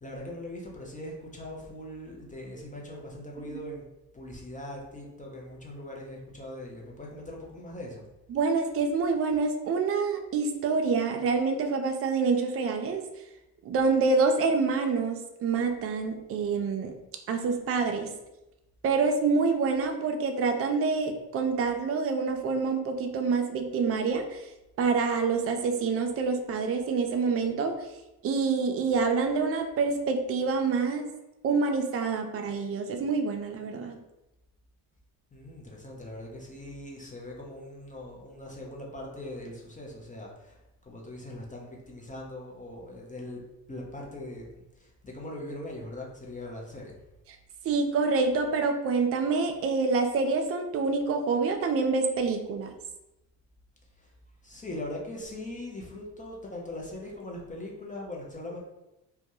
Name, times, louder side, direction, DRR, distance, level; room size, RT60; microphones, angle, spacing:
voice 1, 0.0-3.8 4.1-8.0 35.3-43.4 43.7-47.0 54.0-54.1 54.4-58.6, left 1 dB, 15° left, -2 dB, 0.6 m, -41 dB
voice 2, 8.3-13.0 13.6-16.9 17.3-18.1 18.8-24.5 24.8-27.8 28.2-31.1 31.4-34.0 47.6-52.7, right 4 dB, 30° right, 5 dB, 0.4 m, -27 dB
2.3 x 2.1 x 2.9 m, 0.94 s
hypercardioid pair, 55°, 47 cm